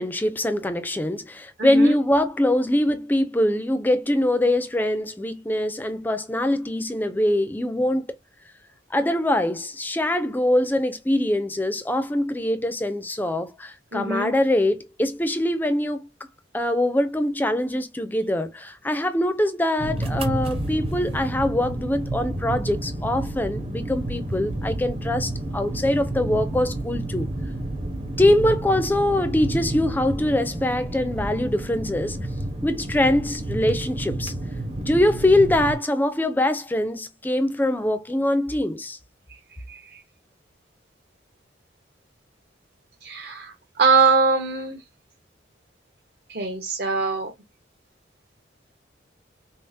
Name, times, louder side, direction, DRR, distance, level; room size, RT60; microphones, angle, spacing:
voice 1, 0.0-8.1 8.9-16.1 16.5-27.3 28.2-32.2 32.6-34.3 34.8-39.0, left 1 dB, 10° left, 0.4 m, -23 dB
voice 2, 1.6-2.0 13.9-14.3 39.3-39.4 39.7-40.0 43.0-44.8 46.3-47.3, right 4 dB, 60° right, 0.8 m, -23 dB
sound 1, 19.8-35.7, right 1 dB, 30° right, 0.7 m, -30 dB
5.3 x 2.0 x 2.6 m
head